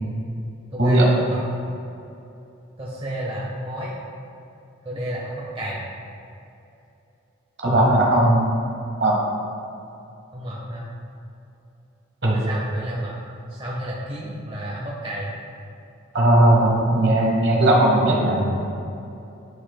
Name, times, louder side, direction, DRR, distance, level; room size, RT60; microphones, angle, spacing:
voice 1, 0.7-1.4 2.8-3.9 4.8-5.8 10.3-10.9 12.3-13.2 13.5-15.3, equal, 25° right, -5 dB, 0.7 m, -31 dB
voice 2, 7.6-8.5 9.0-9.1 12.2-12.4 16.1-18.5, right 1 dB, 55° right, -2 dB, 1.2 m, -17 dB
10.0 x 4.9 x 2.2 m, 2.8 s
head